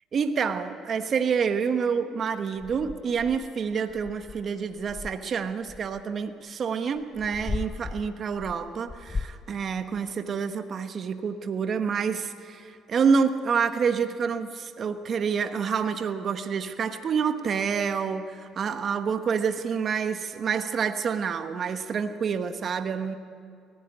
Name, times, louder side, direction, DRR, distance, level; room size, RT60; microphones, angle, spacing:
voice 1, 0.1-23.2, right 6 dB, 50° right, 8 dB, 1.2 m, -28 dB
sound 1, 2.6-6.0 7.0-9.4, left 4 dB, 30° left, 0.6 m, -37 dB
18.5 x 15.0 x 10.0 m, 2.3 s
supercardioid pair, 75°, 0 cm